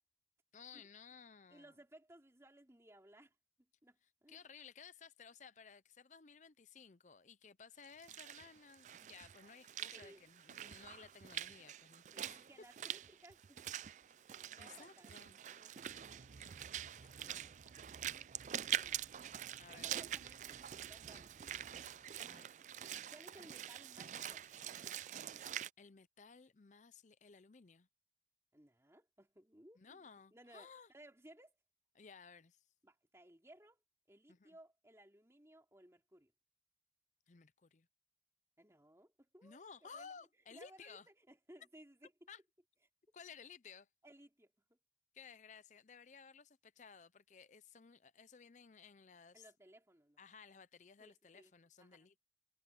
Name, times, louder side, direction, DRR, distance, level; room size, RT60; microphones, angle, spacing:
voice 1, 0.5-1.7 4.3-12.7 14.6-15.4 16.4-17.5 19.6-20.1 22.2-22.5 25.2-25.5 25.8-27.9 29.8-30.9 31.9-32.6 34.3-34.6 37.3-37.9 39.4-41.1 42.3-42.4 43.1-43.9 45.1-49.5 50.2-52.2, left 6 dB, 45° left, 0.6 m, -58 dB
voice 2, 1.5-3.3 3.8-4.4 9.9-10.2 12.1-13.8 14.4-15.2 15.5-15.7 17.8-18.3 18.7-19.0 19.7-22.2 23.1-24.5 28.5-30.0 30.3-31.6 32.8-33.8 34.1-36.3 38.6-40.1 40.5-41.0 41.3-42.1 44.0-44.5 49.3-50.2 51.0-51.5 51.8-52.1, right 1 dB, 15° right, 3.0 m, -61 dB
Walk footsteps / Splash splatter, 7.8-25.7, right 11 dB, 45° right, 0.3 m, -45 dB
sound 1, 14.1-17.7 18.2-18.3 19.0-19.1 19.6-19.8 20.2-20.3 20.5-22.1 22.8-23.3 23.7-25.1, left 3 dB, 15° left, 4.2 m, -72 dB
sound 2, 15.8-22.3, right 3 dB, 70° right, 0.8 m, -62 dB
head